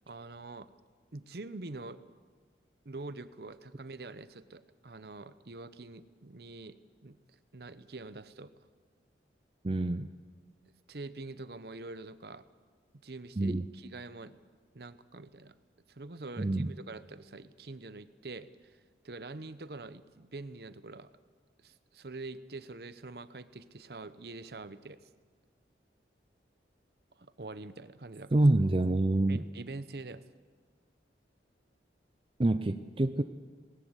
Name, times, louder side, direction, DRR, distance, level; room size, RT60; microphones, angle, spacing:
voice 1, 0.1-0.7 1.1-2.0 2.8-6.8 7.0-7.2 7.5-8.5 10.9-12.5 13.0-14.4 14.7-15.5 15.9-18.8 19.0-21.1 21.6-25.0 27.2-28.4 29.3-30.2, right 3 dB, 60° right, 13 dB, 0.9 m, -45 dB
voice 2, 9.6-10.1 13.4-13.6 16.4-16.7 28.3-29.4 32.4-33.2, right 2 dB, 30° right, 10 dB, 0.5 m, -26 dB
19.0 x 18.5 x 8.1 m, 1.5 s
head